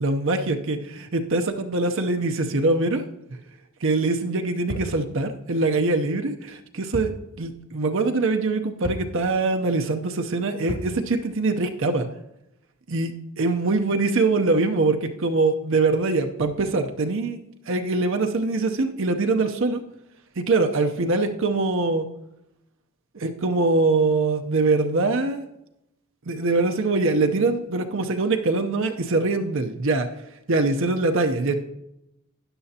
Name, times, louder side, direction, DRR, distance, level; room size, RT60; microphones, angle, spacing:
voice 1, 0.0-3.0 3.3-3.4 3.8-12.1 12.9-17.4 17.7-19.8 20.4-22.1 23.1-25.5 26.2-31.5, right 3 dB, 60° right, 5 dB, 0.7 m, -23 dB
sound 1, 4.7-5.0 6.9-7.2 7.5-7.6 8.8-9.1 10.7-11.0, equal, 45° left, 1.7 m, -32 dB
12.5 x 9.7 x 2.8 m, 0.86 s
head